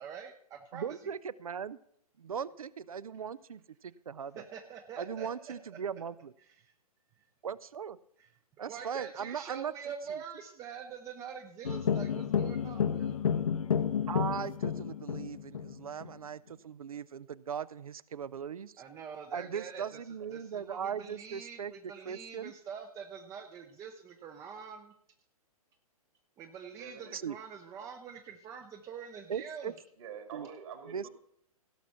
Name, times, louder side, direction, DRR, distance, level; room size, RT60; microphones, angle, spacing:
voice 1, 0.0-1.0 4.3-5.8 6.4-6.7 8.2-8.3 8.7-13.1 18.8-20.0 20.3-24.9 26.4-29.7, right 7 dB, 15° right, 6 dB, 0.6 m, -45 dB
voice 2, 0.7-1.8 2.2-4.4 5.0-6.3 7.4-8.0 8.6-9.7 10.1-10.2 14.1-18.7 19.3-22.5 27.1-27.4 29.3-29.7 30.3-30.5 30.9-31.1, right 7 dB, 65° right, 19 dB, 0.5 m, -39 dB
sound 1, 11.6-16.1, left 7 dB, 60° left, 0.9 m, -31 dB
voice 3, 26.7-27.2 30.0-31.1, right 7 dB, 50° right, 5 dB, 2.0 m, -46 dB
16.5 x 6.0 x 5.6 m, 0.70 s
figure-of-eight pair, 120°, 20 cm